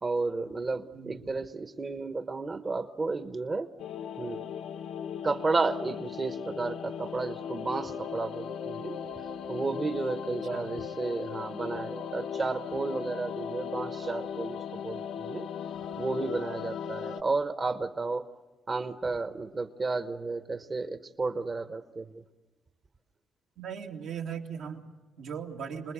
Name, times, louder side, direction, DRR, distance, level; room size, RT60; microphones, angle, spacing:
voice 1, 0.0-3.7 4.2-4.4 5.2-15.5 16.0-18.3 18.7-22.2, right 3 dB, 35° right, 10 dB, 1.1 m, -32 dB
sound 1, 3.8-17.2, left 7 dB, 85° left, 1.1 m, -37 dB
voice 2, 23.6-25.9, right 7 dB, 80° right, 1 dB, 2.5 m, -38 dB
27.0 x 20.5 x 8.7 m, 1.3 s
cardioid pair, 90°, 0 cm